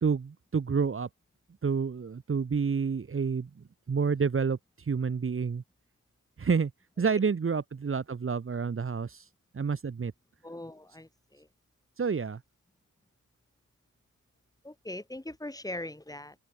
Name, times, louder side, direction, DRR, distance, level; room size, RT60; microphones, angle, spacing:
voice 1, 0.0-1.1 1.6-3.5 3.9-4.6 4.9-5.6 6.4-6.7 7.0-9.2 9.5-10.1 12.0-12.4, right 5 dB, 40° right, 2.5 m, -29 dB
voice 2, 10.4-11.5 14.6-16.4, left 1 dB, 10° left, 6.2 m, -41 dB
open air
cardioid pair, 85°, 31 cm